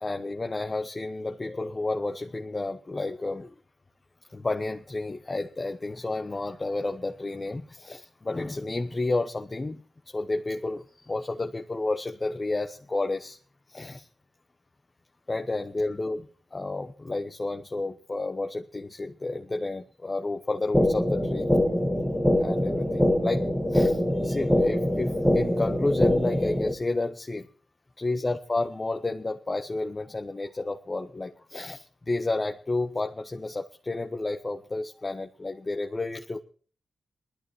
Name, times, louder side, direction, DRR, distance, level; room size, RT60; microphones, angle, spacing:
voice 1, 0.0-3.5 4.3-13.4 13.7-14.1 15.3-21.5 22.4-27.5 28.0-36.4, left 2 dB, 35° left, 4 dB, 1.2 m, -31 dB
sound 1, 20.7-26.7, left 1 dB, 10° right, 2.4 m, -24 dB
20.0 x 13.5 x 3.1 m, 0.40 s
cardioid pair, 50°, 0 cm